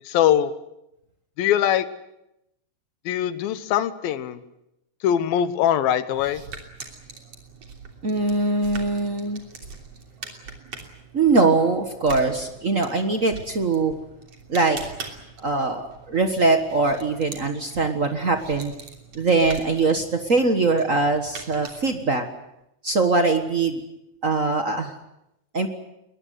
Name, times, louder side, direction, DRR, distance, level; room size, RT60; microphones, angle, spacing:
voice 1, 0.0-0.5 1.4-1.9 3.1-4.4 5.0-6.4, left 10 dB, 90° left, 13 dB, 3.0 m, -22 dB
sound 1, 6.1-22.2, right 4 dB, 45° right, 4.0 m, -42 dB
voice 2, 8.0-9.4 11.1-13.9 14.5-15.0 15.4-18.7 19.1-22.2 22.8-23.8 24.2-24.9 25.5-25.7, right 3 dB, 65° right, 7 dB, 0.7 m, -22 dB
21.5 x 21.5 x 9.5 m, 0.85 s
omnidirectional pair, 4.0 m